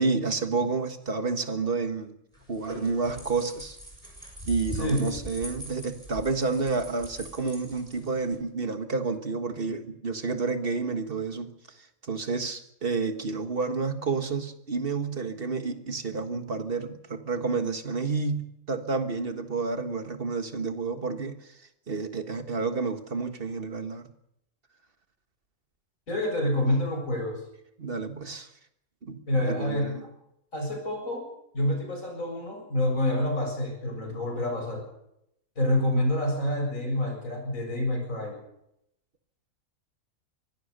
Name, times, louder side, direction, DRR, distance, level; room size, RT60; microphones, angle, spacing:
voice 1, 0.0-2.2 2.5-3.8 4.5-11.5 11.8-21.6 21.9-24.1 27.8-28.5 29.0-30.0, right 4 dB, 40° right, 8 dB, 1.8 m, -30 dB
sound 1, 2.3-8.4, right 1 dB, 25° right, 7.0 m, -41 dB
voice 2, 26.1-27.4 29.3-30.0 30.5-31.2 31.5-34.8 35.6-38.4, left 1 dB, 65° left, 2 dB, 7.7 m, -27 dB
24.0 x 17.5 x 6.8 m, 0.78 s
omnidirectional pair, 1.5 m